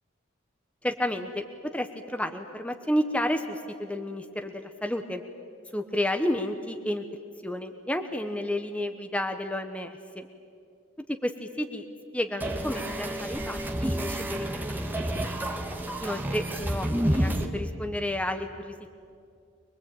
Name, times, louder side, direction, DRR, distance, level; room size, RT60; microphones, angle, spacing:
voice 1, 0.8-5.2 5.7-7.0 7.4-10.3 11.1-11.9 12.1-15.5 16.0-18.9, left 1 dB, 5° left, 6 dB, 0.9 m, -31 dB
sound 1, 12.4-17.5, right 1 dB, 10° right, 1.4 m, -29 dB
24.5 x 21.5 x 8.8 m, 2.4 s
head